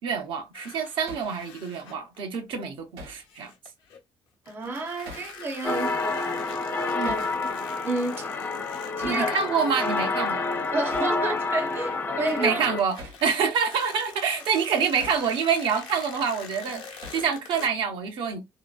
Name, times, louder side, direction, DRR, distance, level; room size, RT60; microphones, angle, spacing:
voice 1, 0.0-3.5 6.9-7.2 9.0-10.4 12.4-18.4, right 6 dB, 70° right, 0.7 m, -27 dB
sound 1, 0.5-2.4 3.2-4.0 4.5-12.0 12.3-17.7, left 6 dB, 80° left, 0.8 m, -45 dB
Hammer, 1.1-1.3 3.0-3.2 5.1-5.4 7.0-7.3 9.0-9.3 10.9-11.2 13.0-13.3 15.0-15.3 17.0-17.3, equal, 90° right, 1.2 m, -42 dB
voice 2, 4.5-6.5 7.0-7.3 7.8-8.3 9.0-9.3 10.7-12.6, right 2 dB, 25° right, 0.5 m, -30 dB
sound 2, 5.6-12.8, left 3 dB, 25° left, 0.4 m, -28 dB
2.8 x 2.5 x 2.3 m
cardioid pair, 170°, 9 cm